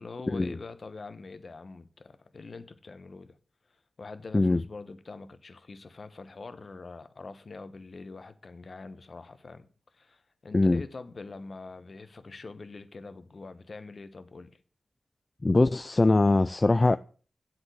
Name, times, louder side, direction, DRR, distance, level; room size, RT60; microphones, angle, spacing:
voice 1, 0.0-3.4 4.0-9.7 9.9-14.5, left 3 dB, 55° left, 1.1 m, -44 dB
voice 2, 15.4-17.0, left 2 dB, 35° left, 0.4 m, -22 dB
8.0 x 6.0 x 7.7 m
cardioid pair, 40°, 0 cm